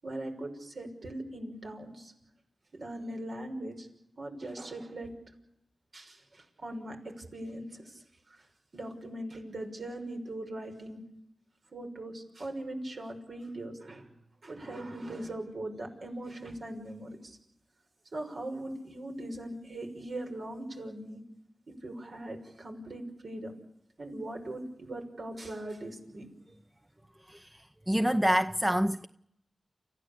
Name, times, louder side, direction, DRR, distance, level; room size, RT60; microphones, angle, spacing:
voice 1, 0.0-2.1 2.8-3.9 4.2-5.1 5.9-8.5 8.7-11.0 11.7-14.1 14.4-17.4 18.1-21.2 21.8-23.5 24.0-26.3, right 1 dB, 65° right, 6.0 m, -40 dB
voice 2, 27.2-29.1, equal, 15° right, 0.8 m, -27 dB
29.0 x 15.5 x 8.7 m
cardioid pair, 50°, 0 cm